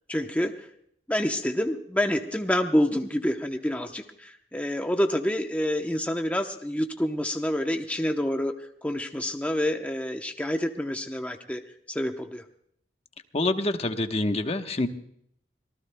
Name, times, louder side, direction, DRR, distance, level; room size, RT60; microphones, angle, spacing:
voice 1, 0.1-0.7 1.1-11.6 11.9-12.4, equal, 10° left, 4 dB, 0.8 m, -27 dB
voice 2, 13.3-14.9, left 2 dB, 35° left, 7 dB, 1.0 m, -26 dB
25.5 x 18.5 x 2.2 m, 0.67 s
head